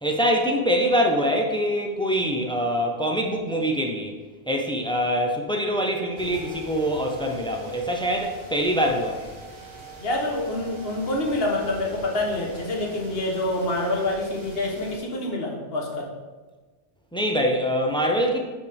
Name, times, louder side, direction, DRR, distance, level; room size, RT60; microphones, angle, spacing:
voice 1, 0.0-4.1 4.5-9.3 17.1-18.4, equal, 5° left, 1 dB, 0.4 m, -24 dB
sound 1, 6.2-15.0, right 1 dB, 25° right, 0.9 m, -43 dB
voice 2, 10.0-16.1, left 2 dB, 55° left, 0 dB, 1.3 m, -27 dB
8.4 x 4.1 x 3.5 m, 1.3 s
omnidirectional pair, 1.2 m